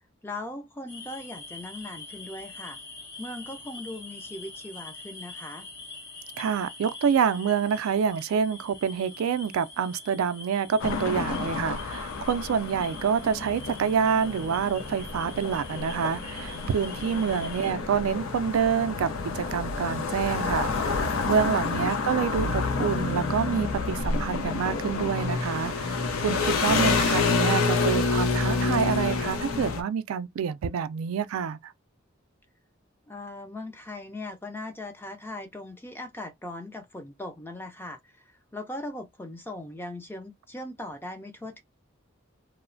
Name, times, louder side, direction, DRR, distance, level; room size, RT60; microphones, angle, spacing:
voice 1, 0.2-2.8 3.2-5.7 17.3-17.4 33.1-38.2 38.5-41.6, left 1 dB, 10° left, 0.4 m, -39 dB
sound 1, 0.9-17.7, left 3 dB, 35° left, 1.8 m, -45 dB
voice 2, 6.4-31.7, right 7 dB, 90° right, 0.3 m, -27 dB
sound 2, 10.8-29.8, left 4 dB, 90° left, 0.5 m, -28 dB
3.0 x 2.0 x 2.5 m
head